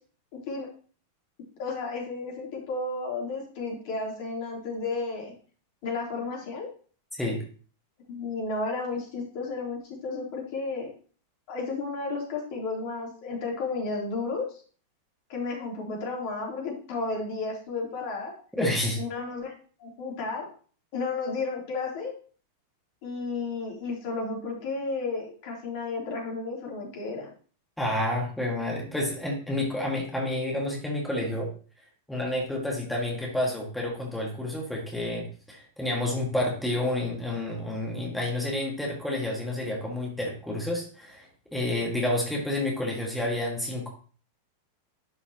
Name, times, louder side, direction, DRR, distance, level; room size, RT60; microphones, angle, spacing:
voice 1, 1.6-5.3 5.8-6.7 8.1-10.9 11.5-14.5 15.3-18.3 19.0-19.5 19.8-20.5 20.9-22.1 23.0-27.3, left 3 dB, 45° left, -1 dB, 3.4 m, -32 dB
voice 2, 7.1-7.4 18.6-19.0 27.8-31.5 32.1-43.9, left 1 dB, 5° left, -2 dB, 2.0 m, -29 dB
11.5 x 5.4 x 3.0 m, 0.41 s
figure-of-eight pair, 90°, 0 cm